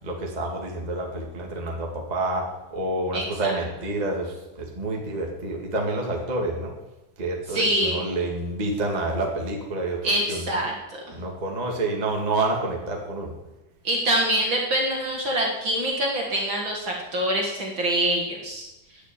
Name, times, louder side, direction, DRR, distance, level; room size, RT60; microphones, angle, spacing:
voice 1, 0.0-6.7 7.2-10.6 11.1-13.3, right 2 dB, 20° right, -1 dB, 1.3 m, -28 dB
voice 2, 7.5-8.0 10.0-11.0 13.8-18.7, right 1 dB, 40° right, -1 dB, 2.2 m, -25 dB
10.5 x 8.2 x 9.0 m, 0.97 s
omnidirectional pair, 4.3 m